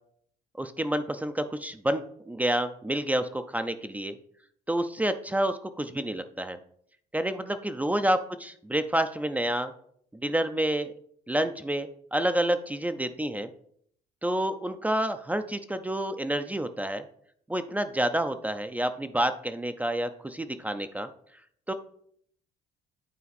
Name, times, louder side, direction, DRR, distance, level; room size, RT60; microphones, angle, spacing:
voice 1, 0.6-4.2 4.7-6.6 7.1-9.7 10.1-10.9 11.3-13.5 14.2-17.0 17.5-21.1 21.7-21.8, right 1 dB, 10° right, 9 dB, 0.4 m, -29 dB
8.4 x 4.3 x 4.1 m, 0.64 s
cardioid pair, 110°, 17 cm